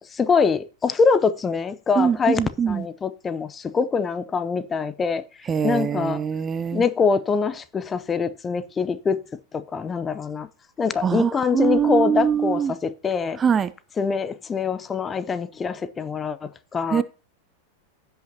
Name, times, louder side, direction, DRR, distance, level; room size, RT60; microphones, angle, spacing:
voice 1, 0.1-5.2 5.6-6.2 6.7-9.2 9.5-10.5 10.8-13.4 14.0-17.0, left 5 dB, 20° left, 0.6 m, -24 dB
voice 2, 2.0-2.8 5.5-6.8 11.0-12.7 13.4-13.7 16.9-17.0, right 7 dB, 20° right, 0.4 m, -22 dB
16.0 x 5.6 x 2.8 m
figure-of-eight pair, 90°, 0 cm